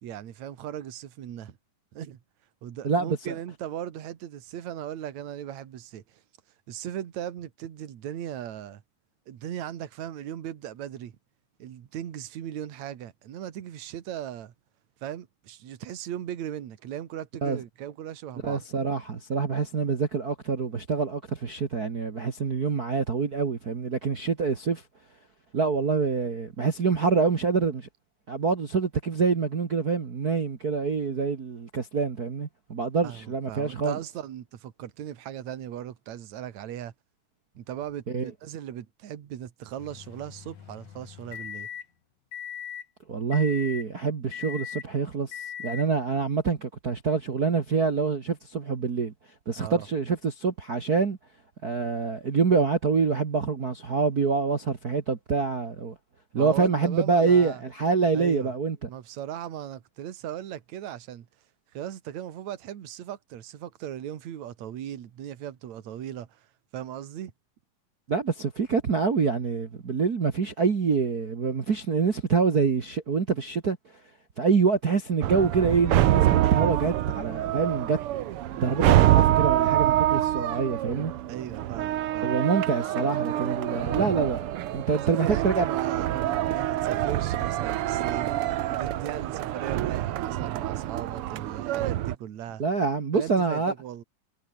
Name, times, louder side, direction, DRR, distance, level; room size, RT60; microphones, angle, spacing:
voice 1, 0.0-1.6 1.9-2.2 2.6-6.2 6.7-8.8 9.3-11.2 11.6-14.5 15.0-18.6 33.0-36.9 37.6-41.7 49.5-49.9 56.3-57.6 58.1-58.5 58.9-61.3 61.7-66.5 66.7-67.3 81.3-82.4 85.1-92.6 93.1-94.0, right 11 dB, 60° right, 3.0 m, -38 dB
voice 2, 2.8-3.3 17.4-17.6 18.4-24.8 25.5-27.9 28.3-34.0 38.1-38.3 43.1-49.1 49.5-51.2 51.6-55.9 56.3-58.9 68.1-73.8 74.4-78.0 78.5-81.1 82.2-84.4 84.7-85.6 92.6-93.7, right 5 dB, 40° right, 1.6 m, -26 dB
sound 1, 39.8-41.9 42.3-42.9 43.3-43.9 44.3-44.9 45.3-45.9, left 9 dB, 65° left, 3.5 m, -39 dB
sound 2, 75.2-92.2, right 13 dB, 80° right, 1.2 m, -26 dB
omnidirectional pair, 3.7 m